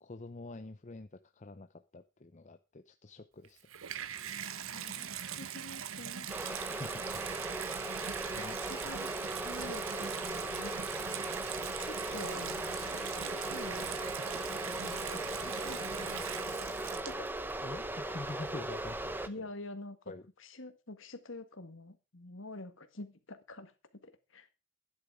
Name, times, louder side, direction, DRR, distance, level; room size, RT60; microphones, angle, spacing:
voice 1, 0.0-3.7 6.6-7.7 8.3-8.6 17.6-19.5 20.1-20.3, left 2 dB, 30° left, 9 dB, 0.6 m, -46 dB
Water tap faucet / Bathtub (filling or washing), 3.4-17.5 18.3-18.4, right 9 dB, 65° right, 0.8 m, -41 dB
voice 2, 4.7-6.3 8.3-10.8 11.8-14.0 14.5-16.5 17.1-17.3 19.3-20.0 20.4-24.5, left 2 dB, 55° left, 10 dB, 1.8 m, -47 dB
sound 1, 6.3-19.3, right 1 dB, 10° right, 0.9 m, -38 dB
Wind instrument woodwind instrument, 13.5-14.5 14.7-18.0, equal, 40° right, 2.3 m, -55 dB
12.0 x 10.0 x 4.8 m, 0.30 s
head